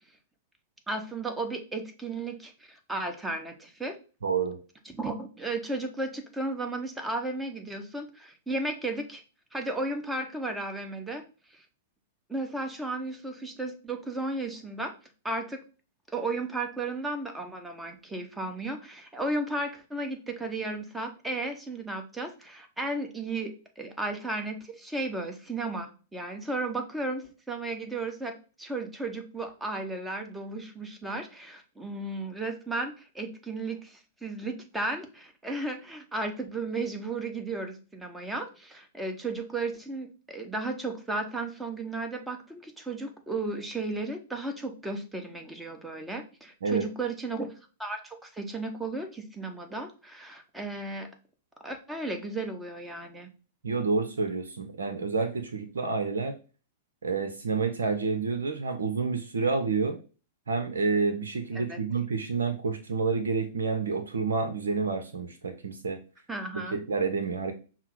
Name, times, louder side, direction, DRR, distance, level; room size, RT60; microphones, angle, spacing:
voice 1, 0.9-4.0 4.9-9.2 9.5-11.2 11.5-11.6 12.3-15.0 15.2-15.6 16.1-47.5 47.8-51.1 51.6-53.3 61.5-61.8 66.3-66.8, right 2 dB, 5° right, 4 dB, 0.9 m, -34 dB
voice 2, 4.2-4.6 46.6-46.9 53.6-56.3 57.0-60.0 60.5-66.0 66.7-67.5, right 4 dB, 75° right, 7 dB, 0.6 m, -29 dB
5.7 x 2.0 x 4.6 m, 0.35 s
figure-of-eight pair, 105°, 0 cm